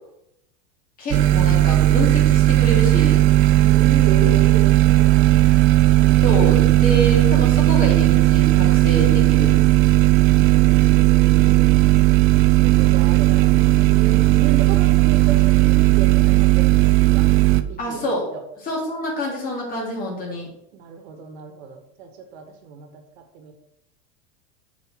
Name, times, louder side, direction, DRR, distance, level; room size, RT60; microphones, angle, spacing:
voice 1, 1.0-3.2 6.2-9.6 17.8-18.3 18.6-20.5, equal, 25° left, -3 dB, 3.4 m, -26 dB
sound 1, 1.1-17.6, right 15 dB, 45° right, 0.6 m, -15 dB
voice 2, 3.6-5.6 10.1-11.8 12.6-18.1 18.3-18.4 20.7-23.5, right 5 dB, 80° right, 5 dB, 1.9 m, -34 dB
7.8 x 5.5 x 4.7 m, 0.79 s
supercardioid pair, 145°, 32 cm